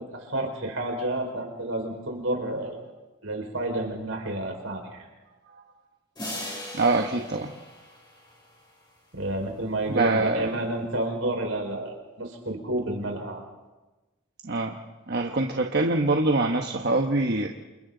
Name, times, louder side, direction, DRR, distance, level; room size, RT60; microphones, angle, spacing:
voice 1, 0.0-2.8 3.2-5.1 9.1-13.4, right 1 dB, 75° right, 2 dB, 5.1 m, -30 dB
sound 1, 6.2-8.7, left 1 dB, 20° left, 7.5 m, -39 dB
voice 2, 6.7-7.5 9.9-10.5 14.4-14.8 15.1-17.5, right 2 dB, 50° right, 2 dB, 1.2 m, -24 dB
29.0 x 28.0 x 4.0 m, 1.2 s
head